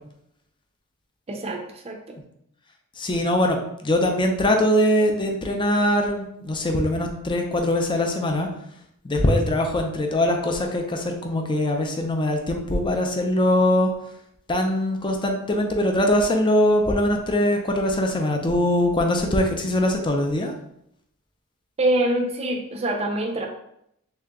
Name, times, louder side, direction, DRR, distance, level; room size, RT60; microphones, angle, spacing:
voice 1, 1.3-2.2 21.8-23.5, right 1 dB, 30° right, 3 dB, 0.5 m, -25 dB
voice 2, 3.0-8.5 9.0-13.9 14.5-20.5, left 1 dB, 20° left, 3 dB, 0.5 m, -22 dB
3.3 x 2.8 x 3.6 m, 0.75 s
head